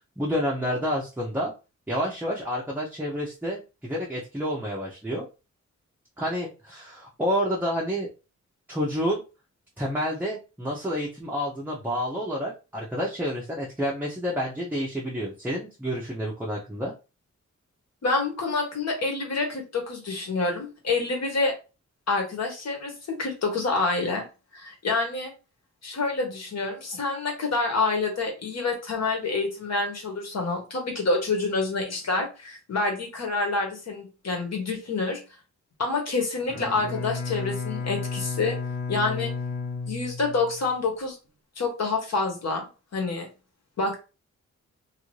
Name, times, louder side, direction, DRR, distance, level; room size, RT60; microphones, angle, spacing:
voice 1, 0.2-1.5 1.9-5.3 6.2-8.1 8.7-9.2 9.8-16.9, equal, 5° right, -4 dB, 0.6 m, -29 dB
voice 2, 18.0-21.5 22.1-22.9 23.2-24.2 24.5-25.3 25.8-35.2 35.8-38.6 38.9-39.3 39.9-41.2 41.6-42.6 42.9-43.3 43.8-43.9, left 3 dB, 60° left, 1 dB, 1.1 m, -27 dB
Bowed string instrument, 36.4-40.7, left 4 dB, 45° left, 1.1 m, -32 dB
2.7 x 2.5 x 3.1 m, 0.31 s
wide cardioid pair, 135°, 29 cm